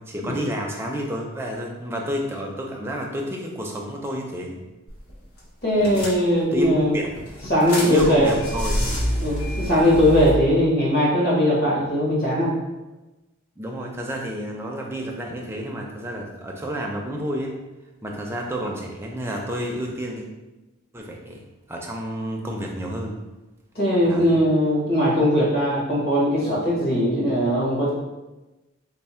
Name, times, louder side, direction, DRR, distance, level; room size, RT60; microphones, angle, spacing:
voice 1, 0.0-4.6 5.8-6.1 6.5-7.1 7.8-8.7 13.6-17.6 18.0-20.3 20.9-21.4 21.7-23.2 24.0-24.4, equal, 10° right, 0 dB, 0.4 m, -30 dB
sound 1, 4.9-5.1 5.4-5.5 5.8-6.6 7.1-10.3, equal, 90° left, 1.0 m, -28 dB
voice 2, 5.6-7.0 7.5-8.4 9.2-12.5 23.7-27.9, equal, 50° left, -6 dB, 1.3 m, -20 dB
3.4 x 2.0 x 4.2 m, 1.1 s
head